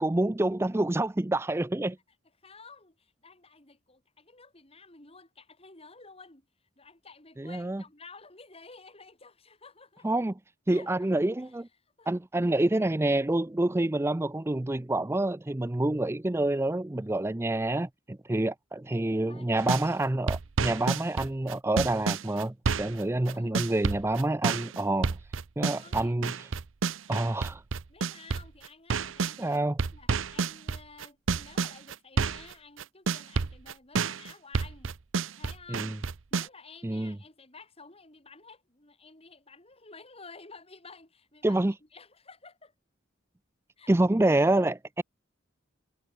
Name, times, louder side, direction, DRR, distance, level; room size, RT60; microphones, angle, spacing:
voice 1, 0.0-2.0 7.4-7.8 10.0-10.3 10.7-11.7 12.1-25.2 25.6-26.5 27.1-27.6 29.4-29.8 35.7-35.9 36.8-37.2 41.4-41.7 43.9-45.0, right 1 dB, 15° right, 0.5 m, -27 dB
voice 2, 2.4-6.5 6.8-10.1 10.7-11.1 11.4-11.6 12.0-12.2 19.3-19.5 23.2-23.7 25.6-26.1 27.1-27.6 27.9-29.6 29.9-34.9 35.4-36.0 36.3-41.6 41.9-42.7 43.8-43.9, left 4 dB, 30° left, 4.2 m, -52 dB
sound 1, 19.6-19.9 20.3-29.4 29.8-32.5 32.8-36.5, right 4 dB, 85° right, 0.7 m, -29 dB
head